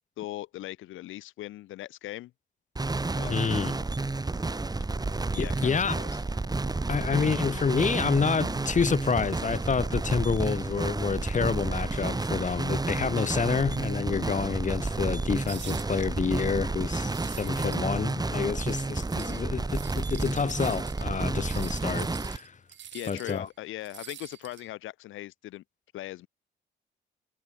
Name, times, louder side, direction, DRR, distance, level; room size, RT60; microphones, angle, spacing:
voice 1, 0.2-2.3 3.2-3.3 5.3-6.1 22.9-25.6 25.9-26.3, left 15 dB, 90° left, 4.1 m, -39 dB
sound 1, 2.8-22.4, right 3 dB, 20° right, 4.8 m, -31 dB
voice 2, 3.3-3.7 5.4-6.0 6.9-22.6 23.1-23.5, left 5 dB, 40° left, 4.5 m, -28 dB
sound 2, 15.5-16.1 17.0-17.8 18.1-19.4 19.7-23.5 23.8-24.7, right 10 dB, 65° right, 6.1 m, -46 dB
cardioid pair, 90°, 20 cm